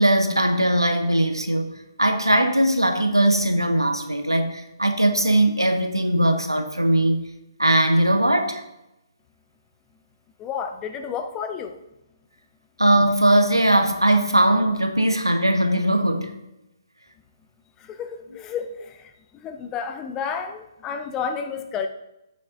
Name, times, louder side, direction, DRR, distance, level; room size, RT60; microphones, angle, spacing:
voice 1, 0.0-1.7 2.0-7.3 7.6-8.6 12.8-16.4, right 1 dB, 90° right, 1.2 m, -20 dB
voice 2, 10.4-11.8 17.8-21.9, left 6 dB, 15° left, 0.6 m, -31 dB
13.0 x 8.9 x 2.5 m
figure-of-eight pair, 135°, 2 cm